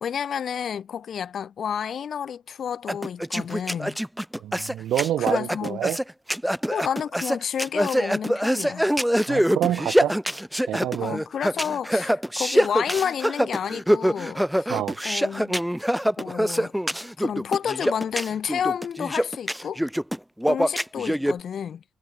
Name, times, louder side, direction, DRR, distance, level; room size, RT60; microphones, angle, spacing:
voice 1, 0.0-4.0 5.2-5.9 6.7-8.9 11.0-14.7 15.0-15.6 16.2-16.8 17.2-19.8 20.5-21.8, left 8 dB, 60° left, 2.4 m, -30 dB
sound 1, 2.9-21.3, equal, ahead, 1.0 m, -24 dB
voice 2, 4.4-6.0 9.3-10.1 10.7-11.2 14.7-15.0, right 12 dB, 80° right, 3.2 m, -27 dB
cardioid pair, 70°, 0 cm